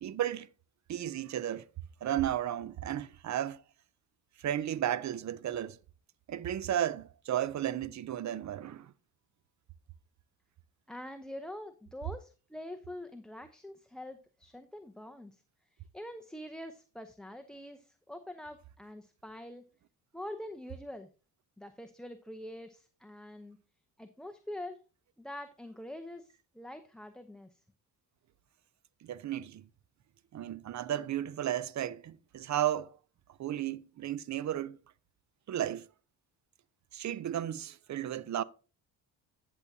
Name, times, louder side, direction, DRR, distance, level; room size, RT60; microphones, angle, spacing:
voice 1, 0.0-0.5 0.9-1.6 2.0-3.6 4.4-5.8 6.3-8.9 29.0-29.7 30.3-33.0 33.4-34.8 35.5-35.9 36.9-38.4, right 11 dB, 45° right, 0.6 m, -34 dB
voice 2, 10.9-15.4 15.9-19.6 20.1-21.1 21.6-23.6 24.0-24.8 25.2-27.6, left 1 dB, ahead, 0.6 m, -45 dB
10.5 x 7.2 x 2.7 m
cardioid pair, 85°, 39 cm